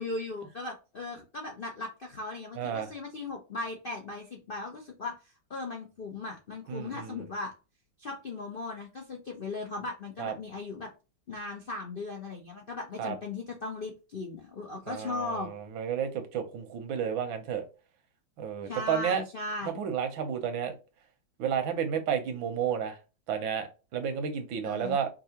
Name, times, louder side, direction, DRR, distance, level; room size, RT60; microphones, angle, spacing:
voice 1, 0.0-7.5 8.0-10.9 11.3-15.5 18.6-19.8 24.6-25.0, left 3 dB, 60° left, 0.5 m, -38 dB
voice 2, 2.6-2.9 6.7-7.2 10.2-10.3 13.0-13.2 14.9-17.6 18.4-19.2 19.8-20.8 21.4-23.0 23.3-25.1, right 8 dB, 90° right, 1.7 m, -31 dB
5.3 x 2.5 x 2.9 m
omnidirectional pair, 2.1 m